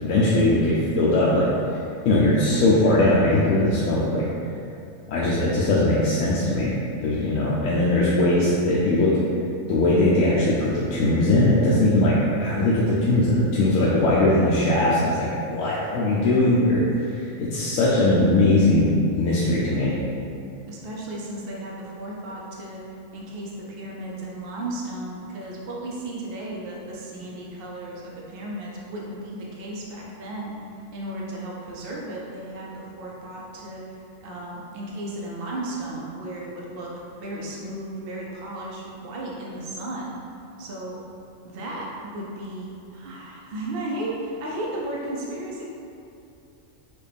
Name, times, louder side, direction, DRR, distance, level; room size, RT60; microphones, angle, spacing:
voice 1, 0.0-1.5 2.1-4.2 5.1-6.7 7.0-9.1 9.7-16.8 17.1-18.9 19.2-19.9, left 1 dB, 75° left, -7 dB, 1.0 m, -20 dB
voice 2, 20.7-22.8 23.1-30.5 30.9-34.0 34.2-36.9 37.2-40.2 40.6-41.0 41.4-45.7, right 1 dB, 50° right, -4 dB, 0.8 m, -34 dB
6.2 x 2.4 x 3.4 m, 2.7 s
omnidirectional pair, 1.4 m